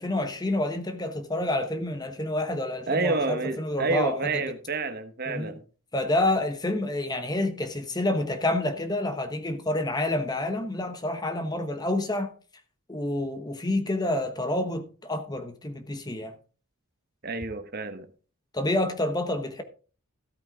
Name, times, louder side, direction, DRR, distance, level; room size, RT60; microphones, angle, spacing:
voice 1, 0.0-4.4 5.3-5.6 5.9-12.3 12.9-16.3 18.5-19.6, left 1 dB, 20° left, 1.0 m, -28 dB
voice 2, 2.9-5.6 17.2-18.1, right 3 dB, 45° right, 1.1 m, -29 dB
13.5 x 8.8 x 3.6 m
head